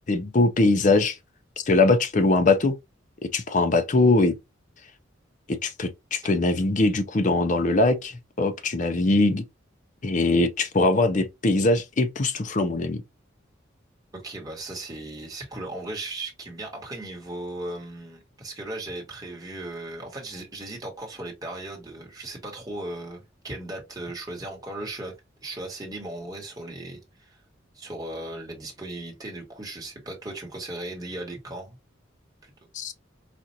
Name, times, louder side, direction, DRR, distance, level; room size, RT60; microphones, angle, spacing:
voice 1, 0.1-1.2 1.7-2.8 3.3-4.3 5.6-9.4 10.0-13.0 32.7-32.9, left 2 dB, 40° left, 0.5 m, -21 dB
voice 2, 14.1-25.1 25.4-27.4 27.7-31.8 32.4-32.5, right 2 dB, 20° right, 1.2 m, -37 dB
4.3 x 2.4 x 2.7 m
head